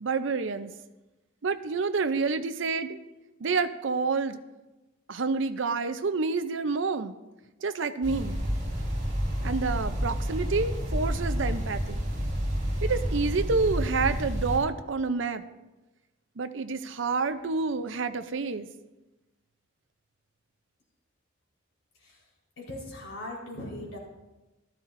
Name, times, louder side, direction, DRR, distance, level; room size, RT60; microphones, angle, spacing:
voice 1, 0.0-0.7 1.4-3.0 3.4-4.4 5.1-7.2 7.6-8.4 9.4-12.0 12.8-15.4 16.4-18.7, right 4 dB, 70° right, 10 dB, 0.6 m, -28 dB
sound 1, 8.0-14.6, equal, 40° right, 3.5 m, -30 dB
voice 2, 22.6-24.0, left 1 dB, 80° left, -3 dB, 4.3 m, -39 dB
15.0 x 13.0 x 2.6 m, 1.1 s
head